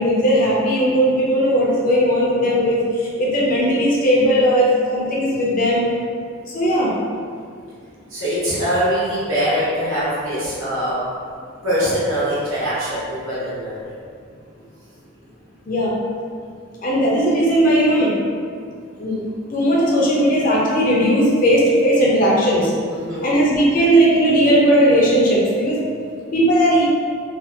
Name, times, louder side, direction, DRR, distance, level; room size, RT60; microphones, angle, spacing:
voice 1, 0.0-5.9 6.5-6.9 15.7-15.9 16.8-18.1 19.0-19.2 19.5-22.7 23.2-25.8 26.3-26.8, equal, 40° left, -5 dB, 0.5 m, -17 dB
voice 2, 8.1-11.0 11.6-13.9 22.9-23.3, equal, 80° right, -10 dB, 1.0 m, -22 dB
2.5 x 2.4 x 2.5 m, 2.2 s
head